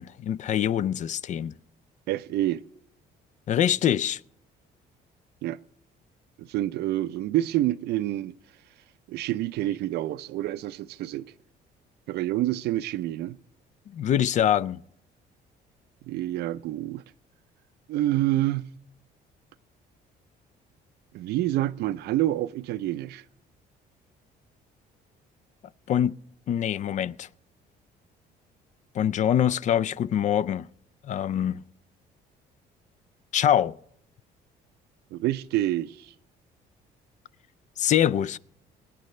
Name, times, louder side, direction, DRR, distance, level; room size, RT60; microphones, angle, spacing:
voice 1, 0.0-1.5 3.5-4.2 13.9-14.8 25.9-26.1 26.5-27.3 28.9-30.7 31.0-31.6 33.3-33.7 37.8-38.4, left 10 dB, 45° left, 0.4 m, -24 dB
voice 2, 2.1-2.6 5.4-5.6 6.4-8.3 9.1-11.3 12.1-13.4 16.0-17.0 17.9-18.7 21.1-23.2 35.1-36.1, right 14 dB, 75° right, 0.5 m, -27 dB
24.0 x 9.2 x 3.2 m
cardioid pair, 110°, 17 cm